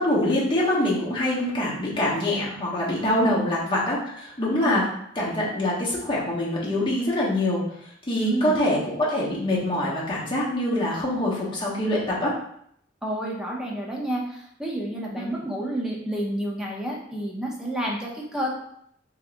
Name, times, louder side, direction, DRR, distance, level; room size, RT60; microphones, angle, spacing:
voice 1, 0.0-4.8 5.2-12.3 15.1-15.4, left 1 dB, 25° left, -6 dB, 1.0 m, -25 dB
voice 2, 8.2-8.6 13.0-18.5, right 1 dB, 5° right, -3 dB, 0.7 m, -29 dB
3.6 x 2.9 x 2.6 m, 0.70 s
head